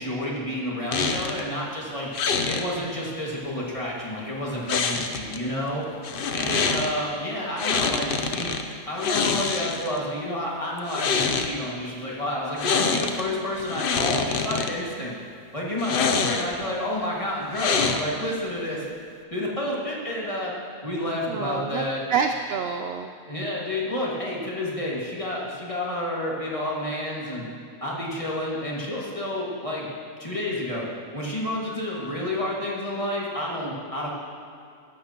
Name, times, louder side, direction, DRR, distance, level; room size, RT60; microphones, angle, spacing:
voice 1, 0.0-2.1 2.5-5.9 6.3-8.5 8.9-15.1 15.5-18.9 19.3-20.5 20.8-22.0 23.3-27.5 27.8-29.9 30.2-30.8 31.1-34.1, left 1 dB, 25° left, -5 dB, 2.0 m, -30 dB
sound 1, 0.9-1.4 2.1-2.6 4.7-5.4 6.0-6.9 7.6-8.6 9.0-10.0 10.8-11.5 12.6-13.2 13.6-14.7 15.8-16.6 17.5-18.3, left 5 dB, 50° left, 0.7 m, -25 dB
voice 2, 6.4-6.9 21.3-21.8 22.1-23.1, right 6 dB, 65° right, 6 dB, 0.6 m, -28 dB
15.0 x 12.5 x 3.0 m, 2.4 s
omnidirectional pair, 1.5 m